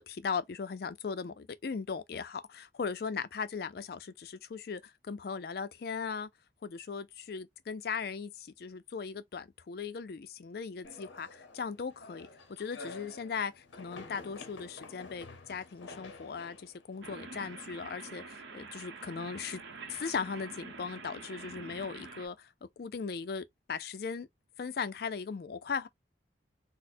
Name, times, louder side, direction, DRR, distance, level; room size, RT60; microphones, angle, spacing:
voice 1, 0.0-6.3 6.6-19.6 19.9-24.3 24.6-25.9, left 5 dB, 55° left, 0.4 m, -38 dB
sound 1, 10.8-17.9, left 3 dB, 90° left, 0.8 m, -50 dB
sound 2, 17.0-22.3, right 4 dB, 80° right, 0.9 m, -46 dB
4.1 x 2.1 x 2.5 m
head